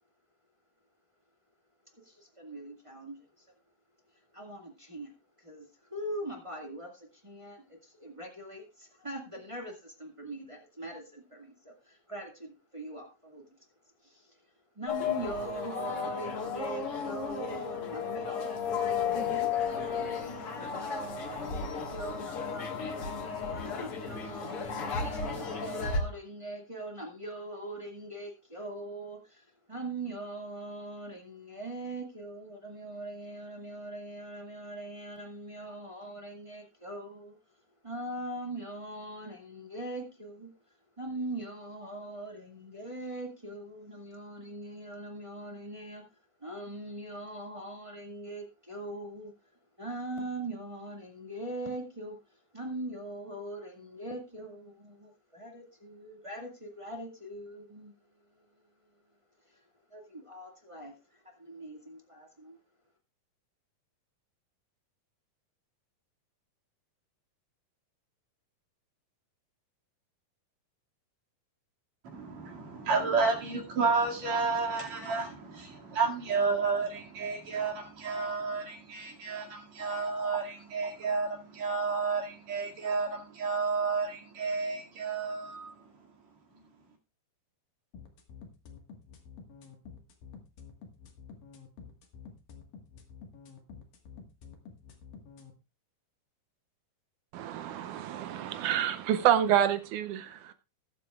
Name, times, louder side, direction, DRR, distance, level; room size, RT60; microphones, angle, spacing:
voice 1, 2.0-3.5 4.3-5.1 5.4-13.4 14.0-14.4 14.7-37.4 37.8-40.5 41.0-46.0 46.4-49.3 49.8-57.9 58.3-58.4 59.4-59.6 59.9-62.6, right 1 dB, 15° right, 1.2 m, -41 dB
sound 1, 14.9-26.0, left 6 dB, 50° left, 2.2 m, -34 dB
voice 2, 72.1-85.8, right 4 dB, 55° right, 3.4 m, -31 dB
sound 2, 87.9-95.5, left 6 dB, 85° left, 3.4 m, -49 dB
voice 3, 97.3-100.5, right 10 dB, 80° right, 2.0 m, -28 dB
20.0 x 7.6 x 2.4 m
omnidirectional pair, 3.8 m